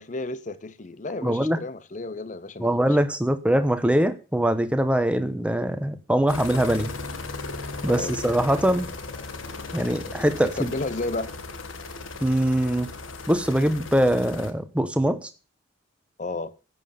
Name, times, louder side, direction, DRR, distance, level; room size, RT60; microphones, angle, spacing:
voice 1, 0.0-2.8 7.9-8.2 10.4-11.3 16.2-16.5, left 2 dB, 40° left, 0.6 m, -32 dB
voice 2, 1.2-1.6 2.6-6.9 7.8-8.9 9.7-10.7 12.2-12.9 13.3-15.3, right 1 dB, 5° right, 0.9 m, -22 dB
sound 1, 6.3-14.5, left 3 dB, 90° left, 1.5 m, -36 dB
10.5 x 7.9 x 6.8 m
head